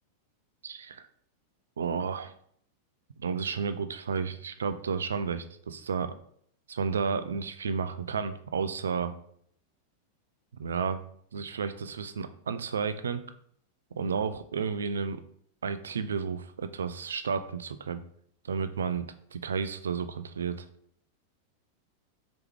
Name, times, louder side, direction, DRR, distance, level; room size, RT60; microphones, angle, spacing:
voice 1, 0.6-1.1 1.8-2.3 3.2-6.1 6.7-9.2 10.6-11.1 11.3-13.2 13.9-15.2 15.6-18.0 18.4-20.7, right 6 dB, 70° right, 11 dB, 0.3 m, -32 dB
4.5 x 3.0 x 3.4 m, 0.64 s
figure-of-eight pair, 90°, 0 cm